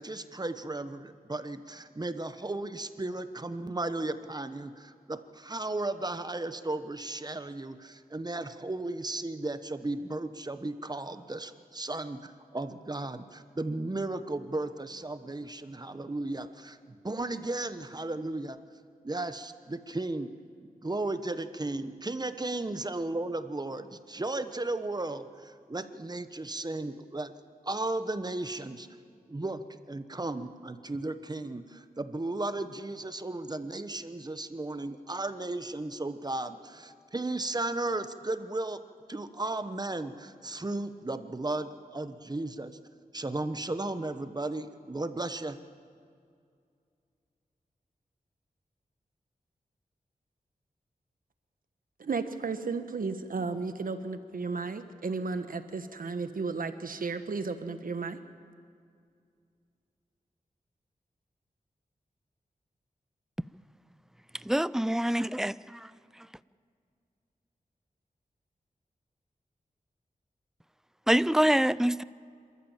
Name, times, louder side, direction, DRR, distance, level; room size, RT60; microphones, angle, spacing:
voice 1, 0.0-16.8 17.0-18.6 19.0-20.3 20.8-27.3 27.6-28.9 29.3-29.6 29.9-38.8 39.1-42.8 43.1-45.6, right 2 dB, 25° right, 1.1 m, -35 dB
voice 2, 52.0-58.2, right 4 dB, 70° right, 1.3 m, -34 dB
voice 3, 64.4-65.5 71.1-72.0, right 1 dB, 5° right, 0.4 m, -25 dB
26.5 x 13.5 x 7.4 m
wide cardioid pair, 65°, 15 cm